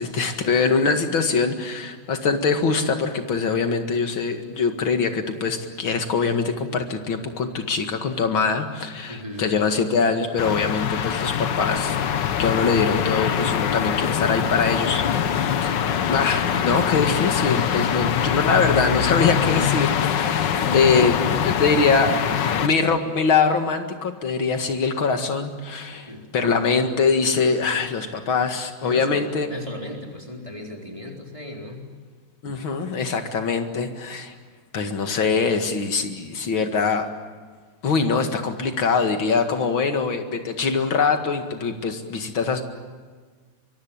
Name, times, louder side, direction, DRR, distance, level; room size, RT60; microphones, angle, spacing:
voice 1, 0.0-12.0 12.4-15.0 15.3-15.8 16.0-21.1 21.4-22.2 22.6-29.5 32.4-34.3 34.7-37.1 37.8-42.6, left 5 dB, 85° left, 6 dB, 2.8 m, -23 dB
voice 2, 9.1-9.5 15.8-16.1 17.7-18.2 20.1-21.9 22.3-22.7 26.1-26.2 28.8-31.9, left 1 dB, 15° right, 0 dB, 4.0 m, -36 dB
sound 1, 10.4-22.7, left 8 dB, 65° left, 1.7 m, -23 dB
24.5 x 23.5 x 8.9 m, 1.5 s
omnidirectional pair, 2.1 m